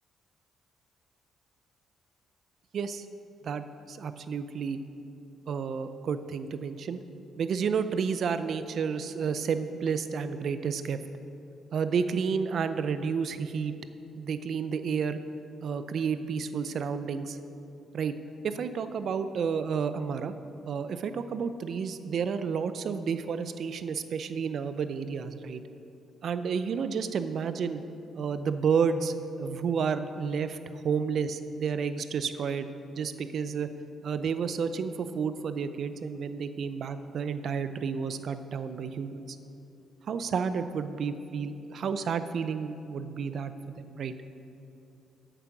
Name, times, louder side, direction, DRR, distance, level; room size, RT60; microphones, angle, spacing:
voice 1, 2.7-3.1 3.4-4.8 5.5-7.0 7.4-11.0 11.7-13.7 14.2-15.2 15.6-17.4 17.9-18.1 18.4-20.3 20.7-25.6 26.2-27.8 28.1-30.6 30.8-32.7 33.0-33.7 34.0-39.4 40.1-44.1, right 6 dB, 60° right, 11 dB, 0.5 m, -31 dB
8.2 x 7.5 x 6.0 m, 2.8 s
cardioid pair, 90°, 0 cm